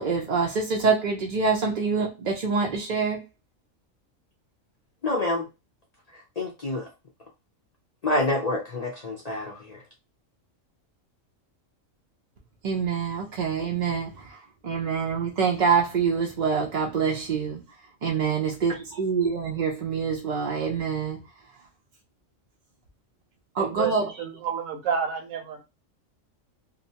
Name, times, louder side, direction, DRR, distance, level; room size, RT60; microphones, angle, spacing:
voice 1, 0.0-3.2 12.6-17.6 18.0-21.2 23.5-24.2, right 5 dB, 60° right, 0.5 m, -26 dB
voice 2, 5.0-5.5 6.1-6.9 8.0-9.8, left 2 dB, 55° left, 0.4 m, -28 dB
voice 3, 23.6-23.9 24.2-25.6, right 7 dB, 80° right, 1.1 m, -29 dB
2.7 x 2.1 x 2.7 m
omnidirectional pair, 1.4 m